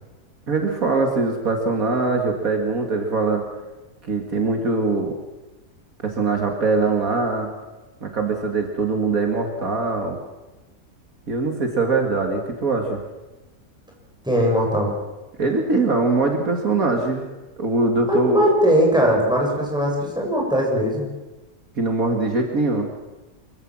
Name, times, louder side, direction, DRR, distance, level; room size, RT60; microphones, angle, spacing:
voice 1, 0.5-3.4 4.1-5.2 6.0-7.5 8.0-10.2 11.3-13.0 15.4-17.2 17.6-18.5 21.8-22.9, right 3 dB, 60° right, 3 dB, 2.5 m, -22 dB
voice 2, 14.2-14.9 18.1-21.1, equal, 5° right, -1 dB, 6.1 m, -19 dB
24.5 x 15.5 x 7.5 m, 1.1 s
omnidirectional pair, 1.6 m